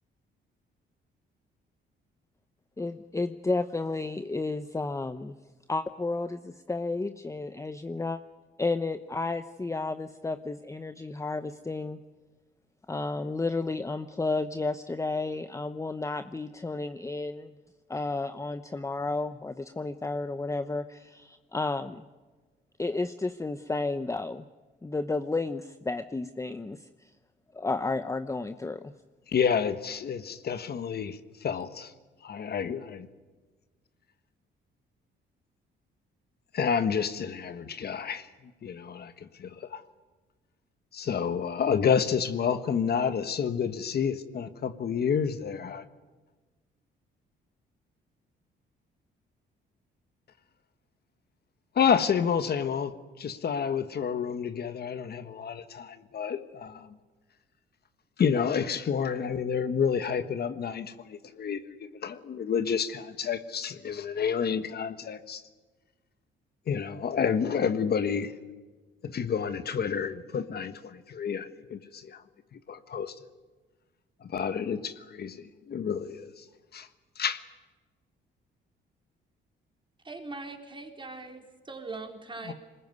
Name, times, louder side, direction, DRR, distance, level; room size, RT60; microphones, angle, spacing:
voice 1, 2.8-5.4 5.7-8.2 8.6-12.0 12.9-17.5 17.9-22.0 22.8-24.5 24.8-27.1 27.5-28.9, left 3 dB, 15° left, 10 dB, 0.9 m, -32 dB
voice 2, 29.3-31.9 32.2-33.1 36.5-38.3 38.6-39.8 40.9-45.8 51.7-56.9 58.2-65.4 66.7-68.4 69.0-72.2 72.5-73.1 74.2-76.4 76.7-76.9 77.2-77.4 82.4-82.5, left 7 dB, 55° left, 11 dB, 1.4 m, -29 dB
voice 3, 80.0-82.5, right 3 dB, 25° right, 4 dB, 4.0 m, -41 dB
22.5 x 20.0 x 9.5 m, 1.3 s
cardioid pair, 90°, 20 cm